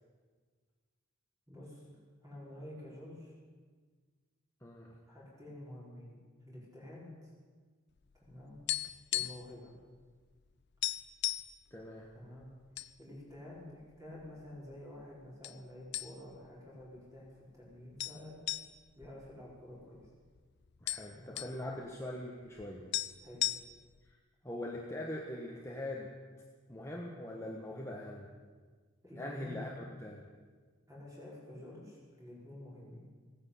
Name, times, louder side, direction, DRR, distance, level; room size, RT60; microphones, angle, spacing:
voice 1, 1.5-1.9 2.2-3.3 5.1-6.2 6.4-7.3 8.1-8.6 9.1-9.7 12.1-12.5 13.0-18.4 18.9-20.0 21.1-21.4 23.2-23.5 29.0-29.6 30.9-33.0, left 1 dB, 15° right, -5 dB, 5.2 m, -49 dB
sound 1, 8.1-9.6 9.8-10.0 10.4-10.5 10.8-11.6 12.2-12.9 13.3-13.4 14.1-14.7 15.4-15.6 15.9-16.5 16.8-16.9 18.0-20.1 20.4-20.5 20.6-21.6 22.6-22.7 22.9-24.0, left 15 dB, 50° left, 0.5 m, -36 dB
voice 2, 11.7-12.1 20.8-22.8 24.1-24.2 24.4-26.1 26.7-28.3 29.2-30.2, left 1 dB, 10° left, -3 dB, 1.4 m, -42 dB
17.0 x 9.9 x 8.5 m, 1.5 s
head